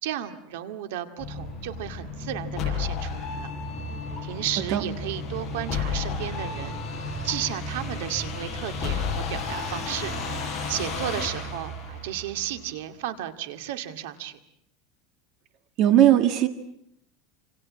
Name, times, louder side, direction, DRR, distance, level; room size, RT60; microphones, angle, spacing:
voice 1, 0.0-3.5 4.2-6.8 7.2-10.1 10.7-14.4, right 12 dB, 90° right, 8 dB, 2.2 m, -33 dB
sound 1, 1.2-12.7, left 4 dB, 25° left, 6.0 m, -32 dB
voice 2, 15.8-16.5, right 12 dB, 45° right, 8 dB, 1.9 m, -18 dB
28.0 x 26.5 x 7.5 m, 0.73 s
cardioid pair, 165°, 0 cm